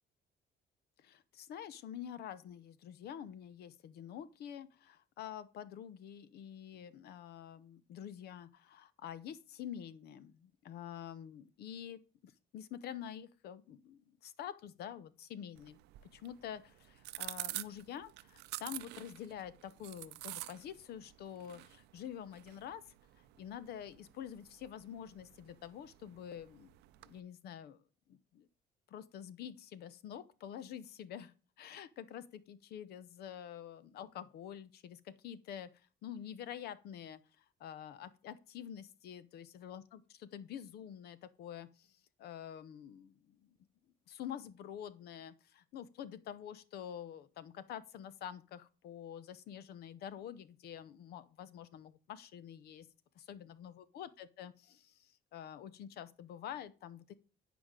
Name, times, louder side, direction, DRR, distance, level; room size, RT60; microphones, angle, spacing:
voice 1, 1.0-15.8 16.1-22.8 23.4-26.7 27.0-27.8 28.1-28.5 28.9-43.6 44.1-52.9 53.2-57.1, left 9 dB, 70° left, 0.8 m, -47 dB
sound 1, 15.5-27.2, right 18 dB, 85° right, 0.5 m, -49 dB
9.2 x 5.1 x 5.1 m
cardioid pair, 110°, 17 cm